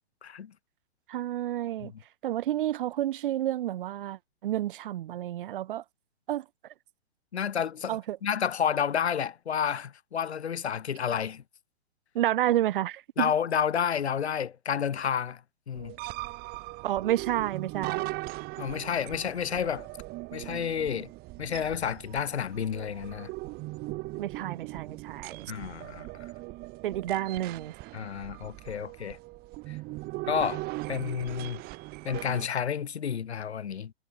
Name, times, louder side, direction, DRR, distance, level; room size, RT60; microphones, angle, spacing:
voice 1, 0.2-0.5 1.8-1.9 7.3-11.4 13.2-15.4 15.7-15.9 18.6-19.9 20.3-21.1 21.4-23.3 25.5-26.1 27.9-29.2 29.7-29.8 30.3-30.6 30.9-31.6 32.0-33.9, left 8 dB, 80° left, 1.2 m, -30 dB
voice 2, 1.1-1.9 2.2-5.8 6.3-6.4 7.9-8.2 12.1-13.3 16.8-18.1 24.2-25.5 26.8-27.7, right 13 dB, 55° right, 1.2 m, -30 dB
sound 1, 15.7-32.5, right 22 dB, 30° right, 2.8 m, -39 dB
hypercardioid pair, 130°, 32 cm